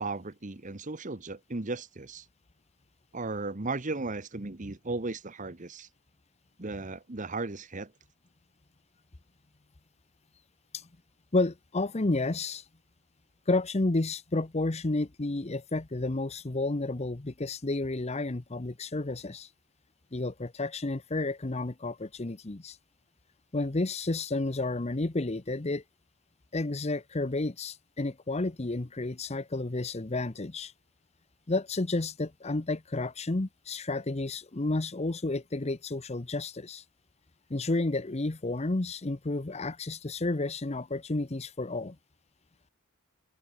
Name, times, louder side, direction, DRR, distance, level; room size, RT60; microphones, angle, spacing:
voice 1, 0.0-2.2 3.1-5.9 6.6-7.9, right 3 dB, 35° right, 1.1 m, -36 dB
voice 2, 11.3-12.6 13.5-19.5 20.1-22.8 23.5-25.8 26.5-30.7 31.5-36.8 37.5-42.0, left 2 dB, 30° left, 0.8 m, -31 dB
open air
head